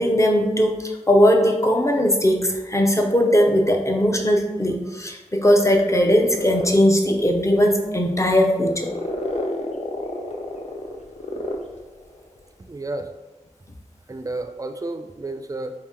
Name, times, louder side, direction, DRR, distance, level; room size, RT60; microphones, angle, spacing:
voice 1, 0.0-8.9, equal, 25° left, 2 dB, 0.6 m, -19 dB
sound 1, 6.0-12.3, left 1 dB, 65° left, 0.5 m, -31 dB
voice 2, 12.7-13.1 14.1-15.7, right 2 dB, 30° right, 7 dB, 0.4 m, -31 dB
4.2 x 2.9 x 3.6 m, 1.1 s
wide cardioid pair, 55°, 13 cm